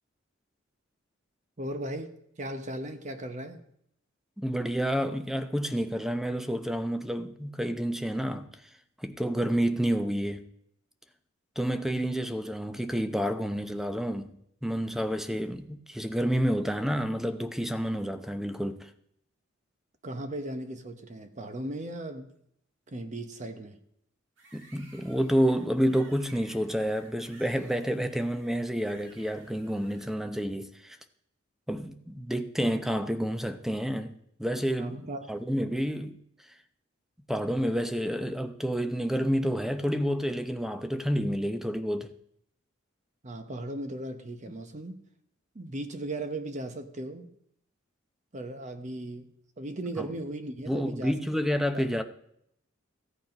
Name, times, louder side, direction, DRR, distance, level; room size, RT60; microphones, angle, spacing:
voice 1, 1.6-2.1 2.4-3.6 20.0-22.3 22.9-23.8 34.8-35.3 43.2-45.0 45.5-47.3 48.3-49.3 49.6-51.2 51.7-52.0, right 1 dB, 35° right, 0.9 m, -37 dB
voice 2, 4.4-8.6 9.0-10.5 11.6-14.4 14.6-18.9 24.5-31.0 31.7-34.1 34.4-36.2 37.3-42.1 50.0-50.1 50.7-52.0, equal, ahead, 0.7 m, -29 dB
sound 1, 24.4-30.1, right 2 dB, 70° right, 2.2 m, -56 dB
15.0 x 8.3 x 5.3 m
head